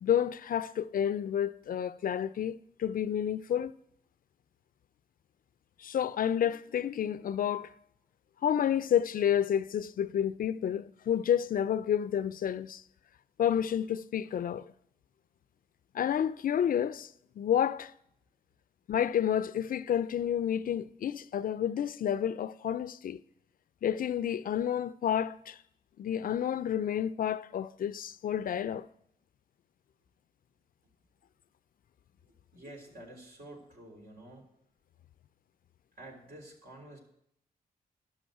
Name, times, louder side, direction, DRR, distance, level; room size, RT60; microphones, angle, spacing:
voice 1, 0.0-3.7 5.8-7.7 8.4-12.8 13.4-14.6 15.9-17.1 17.4-17.9 18.9-23.2 23.8-25.6 26.0-28.8, left 9 dB, 65° left, 0.4 m, -30 dB
voice 2, 32.5-34.5 36.0-37.0, right 1 dB, 65° right, 3.6 m, -49 dB
12.0 x 6.4 x 7.8 m
cardioid pair, 80°, 16 cm